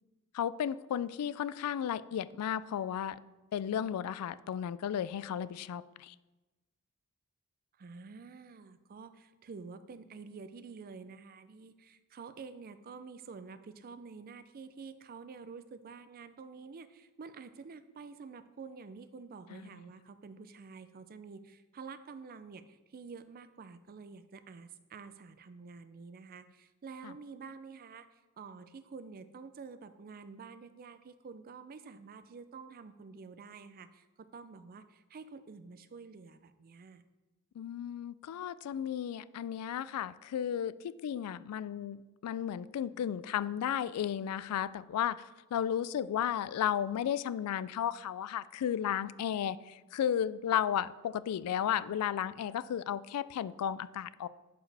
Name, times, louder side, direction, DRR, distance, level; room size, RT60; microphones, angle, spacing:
voice 1, 0.3-3.2 3.5-6.1 19.5-19.6 27.0-27.1 37.6-54.3, left 9 dB, 80° left, 17 dB, 0.3 m, -34 dB
voice 2, 7.8-37.0, right 5 dB, 40° right, 12 dB, 0.4 m, -49 dB
11.0 x 4.7 x 3.3 m, 1.1 s
head